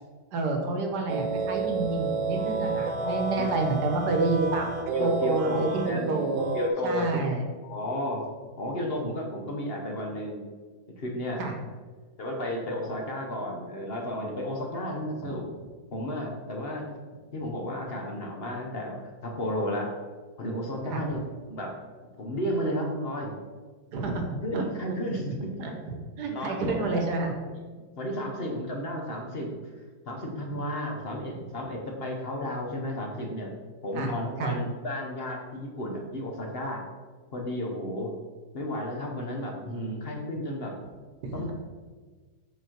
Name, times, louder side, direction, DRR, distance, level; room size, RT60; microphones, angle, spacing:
voice 1, 0.3-4.7 5.0-6.5 6.8-7.4 11.4-11.5 15.2-15.4 20.9-21.0 23.9-24.6 25.6-25.7 26.2-27.3 33.9-34.1 34.4-34.6 41.3-41.5, right 3 dB, 70° right, 3 dB, 1.5 m, -29 dB
sound 1, 1.1-6.7, right 4 dB, 85° right, 1.4 m, -30 dB
voice 2, 2.6-3.5 4.9-6.1 6.5-7.3 7.6-8.2 8.6-10.4 11.0-11.4 12.2-15.4 15.9-16.9 17.3-19.9 20.4-21.2 21.5-21.8 22.2-23.3 24.4-25.5 26.3-27.0 28.0-29.6 30.0-33.5 33.8-36.9 37.3-38.1 38.5-40.8 41.3-41.5, equal, 40° left, 1 dB, 1.0 m, -32 dB
7.1 x 4.2 x 4.5 m, 1.4 s
omnidirectional pair, 1.9 m